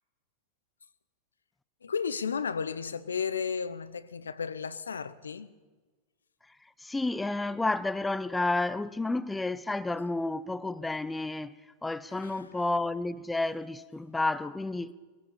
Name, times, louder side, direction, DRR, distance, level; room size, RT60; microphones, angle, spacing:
voice 1, 1.8-5.5 12.1-12.5, left 6 dB, 70° left, 0.8 m, -34 dB
voice 2, 6.8-11.5 11.8-14.9, left 2 dB, 10° left, 0.7 m, -31 dB
20.5 x 16.5 x 8.6 m
figure-of-eight pair, 90°, 0 cm